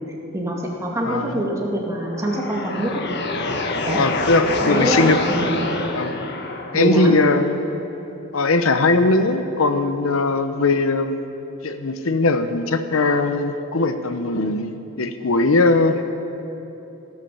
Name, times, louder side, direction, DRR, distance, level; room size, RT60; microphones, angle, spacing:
voice 1, 0.3-3.0 3.9-4.0 4.6-5.6 6.7-7.1, right 1 dB, 15° right, -2 dB, 2.2 m, -24 dB
voice 2, 1.0-1.3 3.9-5.2 5.9-6.1 6.7-7.6 8.3-11.2 11.6-14.7 15.0-16.0, left 3 dB, 80° left, 9 dB, 0.9 m, -19 dB
sound 1, 1.9-6.9, left 2 dB, 55° left, 1.2 m, -26 dB
14.5 x 12.5 x 6.9 m, 3.0 s
head